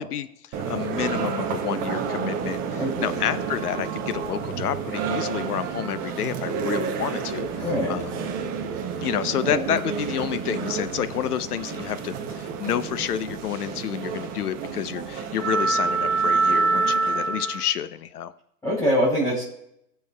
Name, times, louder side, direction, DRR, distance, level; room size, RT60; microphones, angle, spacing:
voice 1, 0.0-8.2 9.0-18.3, left 10 dB, 75° left, 13 dB, 0.8 m, -29 dB
sound 1, 0.5-17.7, right 5 dB, 20° right, 0.7 m, -28 dB
voice 2, 2.8-3.2 7.6-8.0 9.4-9.7 18.6-19.5, equal, 5° left, -7 dB, 2.8 m, -24 dB
19.5 x 7.0 x 2.3 m, 0.74 s
hypercardioid pair, 140°, 46 cm